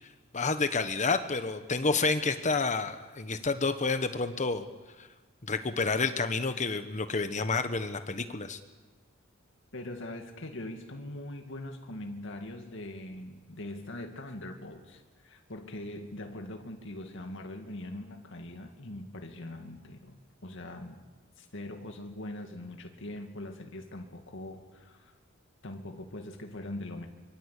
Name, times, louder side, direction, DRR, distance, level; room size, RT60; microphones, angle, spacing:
voice 1, 0.3-4.6 5.0-5.1 5.5-8.6, left 4 dB, 35° left, 9 dB, 1.2 m, -29 dB
voice 2, 9.7-21.0 21.4-25.1 25.6-27.1, left 1 dB, 65° left, 4 dB, 2.2 m, -42 dB
25.0 x 24.5 x 8.4 m, 1.3 s
head